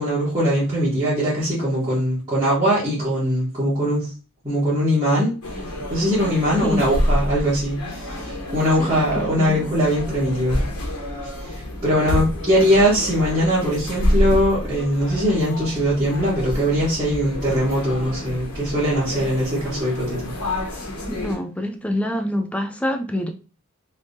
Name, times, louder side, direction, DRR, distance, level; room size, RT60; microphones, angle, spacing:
voice 1, 0.0-4.1 4.4-5.3 5.9-10.6 11.4-20.3, equal, 25° right, 1.4 m, -21 dB
sound 1, 5.4-21.3, left 1 dB, 80° left, 1.2 m, -28 dB
voice 2, 8.9-10.0 21.1-23.3, left 1 dB, 5° left, 0.3 m, -26 dB
3.3 x 3.2 x 2.7 m
head